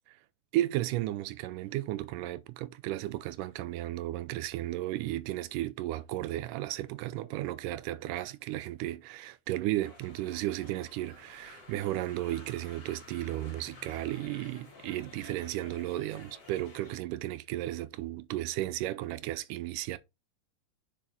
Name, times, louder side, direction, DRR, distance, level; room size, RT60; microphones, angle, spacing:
voice 1, 0.5-20.0, right 15 dB, 90° right, 2.2 m, -34 dB
sound 1, 9.8-17.0, left 3 dB, 35° left, 2.0 m, -52 dB
5.8 x 4.7 x 3.6 m
omnidirectional pair, 3.7 m